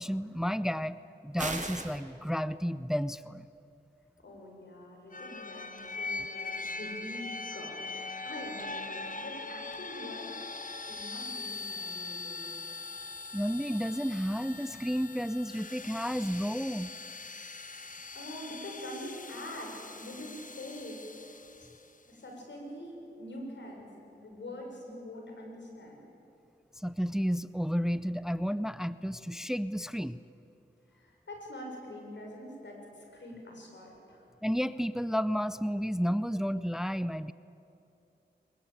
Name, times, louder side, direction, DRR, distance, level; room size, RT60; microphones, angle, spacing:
voice 1, 0.0-3.5 13.3-16.9 26.7-30.2 34.4-37.3, equal, 5° right, 15 dB, 0.6 m, -32 dB
sound 1, 1.4-2.0, right 2 dB, 40° right, 2.6 m, -35 dB
voice 2, 4.2-10.4 10.9-12.5 17.4-17.6 18.1-21.7 22.0-23.9 24.2-26.0 30.9-34.2, left 1 dB, 80° left, 1 dB, 6.4 m, -44 dB
sound 2, 5.1-21.8, left 3 dB, 45° left, 1.2 m, -41 dB
22.5 x 22.0 x 9.0 m, 2.8 s
cardioid pair, 55°, 18 cm